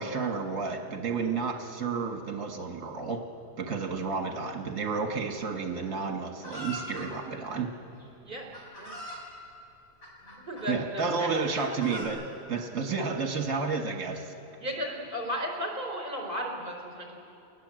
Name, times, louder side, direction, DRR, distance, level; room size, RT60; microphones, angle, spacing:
voice 1, 0.0-3.2 3.6-7.7 10.7-12.2 12.5-14.3, right 4 dB, 60° right, 3 dB, 1.9 m, -31 dB
Chicken rooster, 6.4-7.1 8.0-8.1 8.5-9.2 10.0-10.7 11.3-12.0, equal, 55° left, 6.6 m, -41 dB
voice 2, 8.2-8.9 10.2-11.3 11.5-11.7 14.6-17.2, equal, 35° right, 0 dB, 4.4 m, -35 dB
28.0 x 20.0 x 7.7 m, 2.9 s
omnidirectional pair, 1.7 m